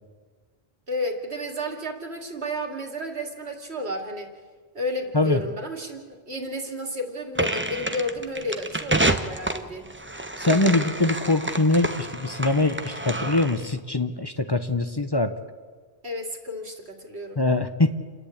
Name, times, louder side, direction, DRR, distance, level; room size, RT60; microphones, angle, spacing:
voice 1, 0.9-4.3 4.7-9.9 16.0-17.4, left 1 dB, 90° right, 3 dB, 2.7 m, -32 dB
sound 1, 7.3-13.7, right 2 dB, 10° right, 0.8 m, -28 dB
voice 2, 10.4-15.4 17.4-17.9, left 2 dB, 25° left, 8 dB, 0.9 m, -23 dB
29.0 x 10.5 x 8.6 m, 1.5 s
omnidirectional pair, 1.1 m